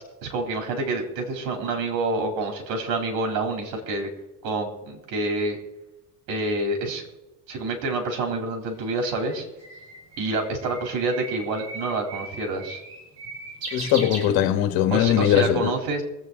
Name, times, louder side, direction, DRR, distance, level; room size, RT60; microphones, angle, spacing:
voice 1, 0.2-4.1 4.4-5.6 6.3-7.0 7.5-9.5 10.2-12.8 14.9-16.0, right 2 dB, 75° right, 3 dB, 3.6 m, -27 dB
Bird, 8.7-14.9, right 3 dB, 40° right, 6.5 m, -38 dB
voice 2, 13.7-15.7, left 11 dB, 70° left, 7 dB, 1.8 m, -20 dB
24.5 x 8.2 x 4.0 m, 0.97 s
cardioid pair, 130°, 37 cm